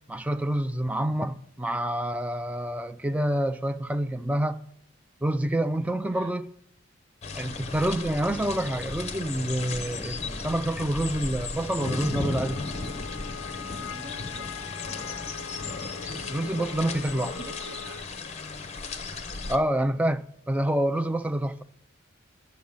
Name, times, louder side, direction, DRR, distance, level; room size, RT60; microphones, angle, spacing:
voice 1, 0.1-4.6 5.2-6.5 7.3-12.6 16.0-17.3 19.5-21.6, right 1 dB, 5° right, 0.3 m, -27 dB
sound 1, 7.2-19.6, left 3 dB, 35° left, 0.8 m, -35 dB
Wind instrument woodwind instrument, 11.8-18.1, left 7 dB, 80° left, 0.3 m, -42 dB
voice 2, 13.6-14.7 16.7-18.1, right 2 dB, 50° right, 0.7 m, -47 dB
9.4 x 6.3 x 7.1 m
head